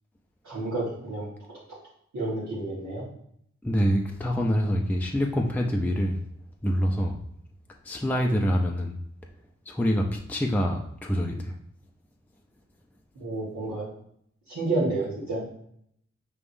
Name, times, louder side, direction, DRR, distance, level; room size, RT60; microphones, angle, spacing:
voice 1, 0.4-1.3 2.1-3.0 13.1-13.8 14.5-15.5, right 2 dB, 80° right, -10 dB, 1.5 m, -30 dB
voice 2, 3.6-6.2 6.6-7.2 7.8-9.0 9.7-11.5, equal, 5° left, 1 dB, 0.6 m, -26 dB
4.8 x 3.5 x 2.6 m, 0.70 s
cardioid pair, 40°, 29 cm